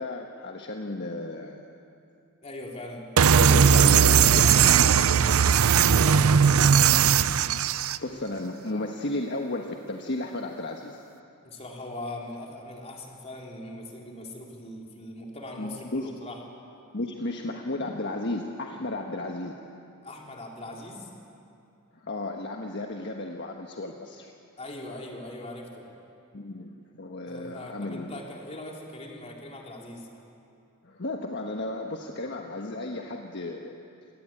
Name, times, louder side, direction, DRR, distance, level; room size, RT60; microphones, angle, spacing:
voice 1, 0.0-1.7 3.2-4.3 7.7-11.0 15.6-16.1 16.9-19.6 21.9-24.3 26.3-28.2 30.8-33.8, left 2 dB, 55° left, 2 dB, 1.4 m, -34 dB
voice 2, 2.4-7.0 11.4-16.4 20.0-21.1 24.6-25.9 27.3-30.1, left 1 dB, 30° left, -1 dB, 3.6 m, -40 dB
sound 1, 3.2-8.0, right 7 dB, 80° right, 0.6 m, -18 dB
27.0 x 19.0 x 8.8 m, 2.6 s
head